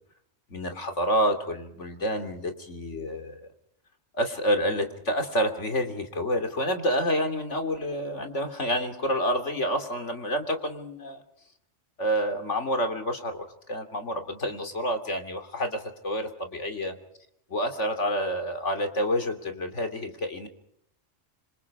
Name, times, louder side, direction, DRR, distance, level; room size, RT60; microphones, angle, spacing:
voice 1, 0.5-3.5 4.1-11.2 12.0-16.9 17.5-20.5, equal, 70° left, 6 dB, 3.2 m, -28 dB
27.5 x 25.5 x 4.9 m, 0.71 s
omnidirectional pair, 1.3 m